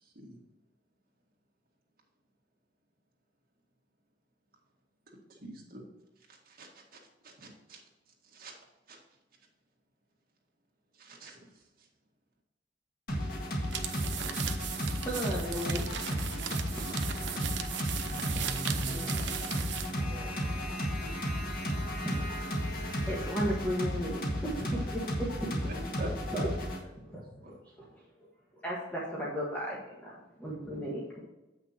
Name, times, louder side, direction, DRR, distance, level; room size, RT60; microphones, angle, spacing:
voice 1, 5.4-5.8 6.3-6.7 7.2-7.8 8.3-8.5 8.9-9.0 11.0-11.5 24.7-24.8 25.7-26.5 27.1-27.6, right 1 dB, 55° right, -1 dB, 2.0 m, -44 dB
sound 1, 13.1-26.8, equal, 55° left, 1.8 m, -34 dB
sound 2, 13.6-20.0, right 9 dB, 75° right, 0.7 m, -37 dB
voice 2, 14.8-15.8 16.1-16.3 16.7-17.4 22.0-22.2 23.1-25.6 26.3-26.5 27.0-27.9 28.6-31.2, equal, 10° left, -5 dB, 1.4 m, -36 dB
voice 3, 18.1-20.8, right 2 dB, 20° right, -3 dB, 2.1 m, -43 dB
8.2 x 6.0 x 4.3 m, 1.0 s
head